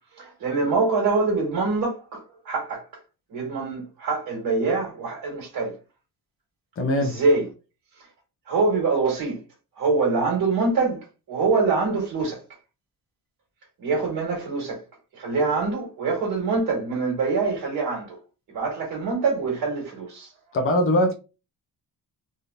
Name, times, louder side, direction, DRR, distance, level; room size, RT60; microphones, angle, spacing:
voice 1, 0.1-2.9 3.3-5.8 7.0-7.5 8.5-9.4 9.8-11.0 11.3-12.4 13.8-14.8 15.1-18.2 18.5-20.3, right 4 dB, 60° right, 1.7 m, -24 dB
voice 2, 6.8-7.1 20.5-21.1, left 1 dB, 35° left, 0.8 m, -21 dB
3.5 x 2.9 x 2.6 m
wide cardioid pair, 165°, 39 cm